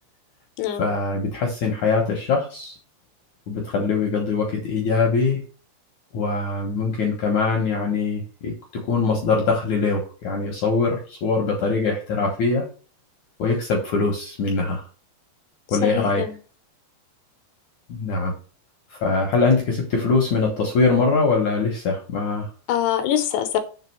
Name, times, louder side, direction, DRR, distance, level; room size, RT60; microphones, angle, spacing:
voice 1, 0.8-2.8 3.5-5.4 6.1-12.7 13.4-14.8 15.7-16.2 17.9-18.3 18.9-22.5, left 4 dB, 60° left, 1 dB, 2.2 m, -22 dB
voice 2, 15.7-16.4 22.7-23.6, left 10 dB, 75° left, 8 dB, 2.8 m, -24 dB
7.6 x 4.0 x 6.7 m, 0.37 s
omnidirectional pair, 5.2 m